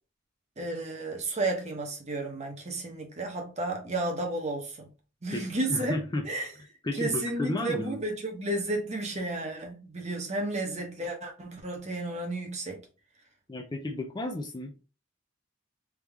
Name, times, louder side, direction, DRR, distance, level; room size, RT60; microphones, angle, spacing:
voice 1, 0.6-4.9 5.2-6.0 6.2-6.5 6.9-12.8, right 2 dB, 35° right, 1.0 m, -32 dB
voice 2, 5.3-6.2 6.8-8.0 13.5-14.8, left 2 dB, 20° left, 0.5 m, -33 dB
3.6 x 3.0 x 3.4 m
head